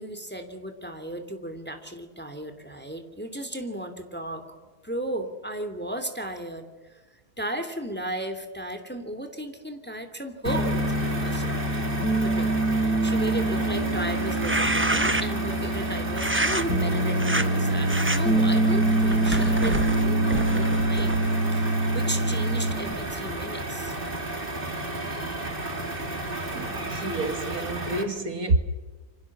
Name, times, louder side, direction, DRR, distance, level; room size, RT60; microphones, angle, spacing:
voice 1, 0.0-4.4 4.8-7.0 7.4-11.5 12.2-12.5 12.8-21.1 21.5-24.0, right 1 dB, 5° left, 2.7 m, -35 dB
sound 1, 10.4-28.0, right 2 dB, 30° right, 3.3 m, -33 dB
Piano, 10.5-22.9, right 1 dB, 70° left, 4.3 m, -25 dB
sound 2, 14.3-15.5 16.2-16.6 17.2-17.5 17.9-18.2 18.8-21.4, right 1 dB, 10° right, 0.9 m, -28 dB
voice 2, 26.5-28.6, right 2 dB, 60° right, 2.5 m, -28 dB
28.0 x 25.5 x 7.4 m
omnidirectional pair, 1.7 m